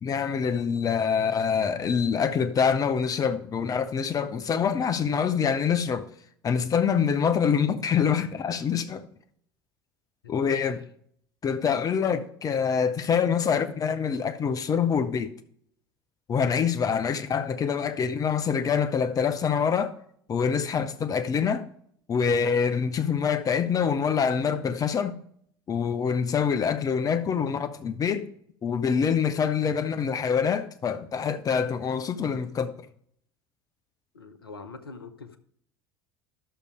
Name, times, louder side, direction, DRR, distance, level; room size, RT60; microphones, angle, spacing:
voice 1, 0.0-6.1 6.4-9.1 10.3-10.8 11.4-15.3 16.3-19.9 20.3-21.7 22.1-25.2 25.7-28.3 28.6-32.7, left 6 dB, 30° left, 0.8 m, -25 dB
voice 2, 10.2-10.8 34.1-35.4, left 4 dB, 80° left, 0.9 m, -44 dB
11.5 x 6.8 x 5.0 m
figure-of-eight pair, 70°, 12 cm